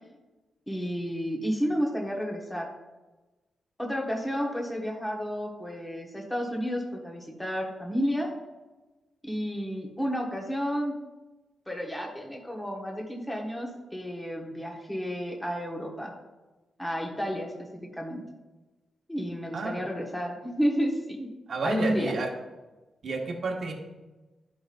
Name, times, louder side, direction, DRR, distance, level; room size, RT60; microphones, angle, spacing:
voice 1, 0.7-2.7 3.8-8.3 9.2-11.0 11.7-16.1 16.8-18.2 19.1-21.3 21.6-22.1, equal, 10° left, -1 dB, 1.3 m, -31 dB
voice 2, 21.5-22.3 23.0-23.7, right 3 dB, 60° right, 1 dB, 1.1 m, -30 dB
12.5 x 5.4 x 2.6 m, 1.2 s
wide cardioid pair, 120°, 0 cm